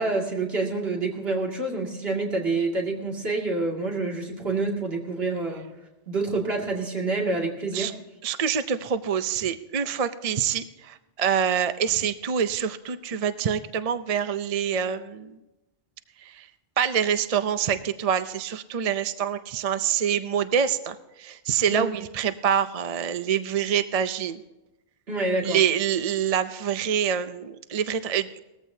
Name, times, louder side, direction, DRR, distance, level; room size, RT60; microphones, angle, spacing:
voice 1, 0.0-5.7 6.1-7.9 21.7-21.9 25.1-25.6, right 3 dB, 75° right, -1 dB, 2.6 m, -27 dB
voice 2, 8.2-15.4 16.2-16.5 16.8-24.4 25.4-28.4, right 8 dB, 45° right, 11 dB, 0.6 m, -26 dB
19.0 x 14.5 x 2.7 m, 1.0 s
omnidirectional pair, 1.0 m